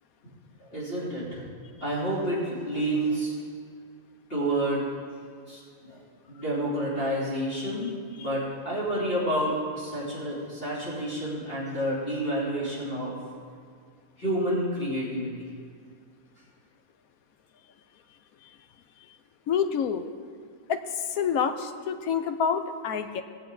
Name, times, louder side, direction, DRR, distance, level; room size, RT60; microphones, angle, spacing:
voice 1, 0.6-1.4 1.8-3.3 4.3-4.9 5.5-6.0 6.3-13.1 14.2-15.3, right 1 dB, 40° left, -9 dB, 3.7 m, -29 dB
voice 2, 19.5-20.0 20.7-23.2, left 7 dB, 75° left, 8 dB, 1.1 m, -27 dB
19.0 x 7.6 x 3.9 m, 2.1 s
omnidirectional pair, 1.5 m